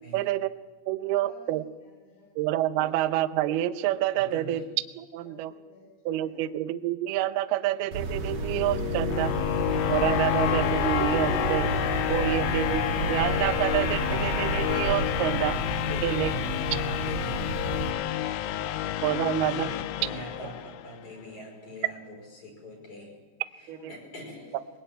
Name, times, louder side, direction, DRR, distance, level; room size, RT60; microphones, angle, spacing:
voice 1, 0.1-0.5 0.9-1.7 2.4-5.5 6.1-9.3 9.9-11.7 12.1-15.6 16.0-16.3 19.0-19.7 23.7-23.9, right 13 dB, 80° right, 11 dB, 2.3 m, -28 dB
voice 2, 1.0-2.3 2.8-2.9 5.1-5.9 6.2-6.5 19.1-19.6 20.1-20.6 21.0-21.6 22.7-23.1 23.7-24.6, left 3 dB, 55° left, -2 dB, 6.2 m, -52 dB
voice 3, 4.1-4.7 15.8-17.6 19.4-23.1 23.6-24.5, equal, 40° left, 1 dB, 6.3 m, -43 dB
sound 1, 7.9-17.9, right 3 dB, 45° right, 3.0 m, -33 dB
sound 2, 8.0-21.0, left 12 dB, 85° left, 3.4 m, -29 dB
sound 3, 8.0-14.9, right 5 dB, 60° right, 3.0 m, -35 dB
21.5 x 21.0 x 9.1 m, 1.3 s
omnidirectional pair, 5.7 m